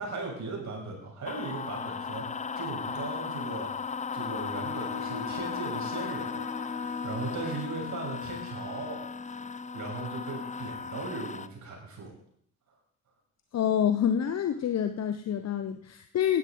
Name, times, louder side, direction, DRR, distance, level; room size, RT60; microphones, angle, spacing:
voice 1, 0.0-6.4 7.0-9.1 9.7-12.1, right 3 dB, 45° right, -1 dB, 7.0 m, -38 dB
sound 1, 1.2-11.5, left 5 dB, 20° left, 0.6 m, -36 dB
Bowed string instrument, 4.1-7.9, left 7 dB, 70° left, 1.1 m, -43 dB
voice 2, 13.5-16.4, left 9 dB, 40° left, 9 dB, 0.9 m, -27 dB
16.5 x 12.0 x 4.0 m, 0.67 s
figure-of-eight pair, 50°, 41 cm